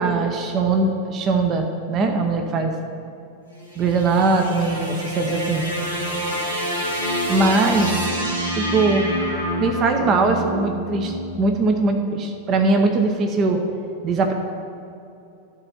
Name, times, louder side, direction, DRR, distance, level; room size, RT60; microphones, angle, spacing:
voice 1, 0.0-2.7 3.8-5.7 7.3-8.1 8.5-9.1 9.6-13.6 14.0-14.3, right 3 dB, 30° right, 5 dB, 0.8 m, -21 dB
sound 1, 3.5-11.9, equal, 80° right, 1.8 m, -27 dB
13.0 x 4.4 x 5.7 m, 2.7 s
figure-of-eight pair, 90°, 0 cm